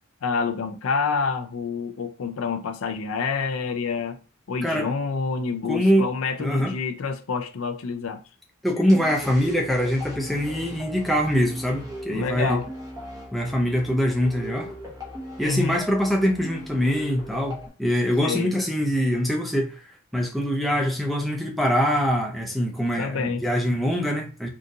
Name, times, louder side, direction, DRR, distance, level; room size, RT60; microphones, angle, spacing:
voice 1, 0.2-4.2 4.5-8.2 12.1-12.7 15.4-15.8 18.2-18.6 23.0-23.4, left 5 dB, 75° left, 0.5 m, -27 dB
voice 2, 5.6-6.1 6.4-6.7 8.6-12.6 13.3-14.7 15.4-19.8 20.1-24.5, equal, ahead, 0.5 m, -23 dB
sound 1, 8.9-17.7, equal, 15° right, 0.9 m, -38 dB
3.8 x 2.4 x 2.6 m
head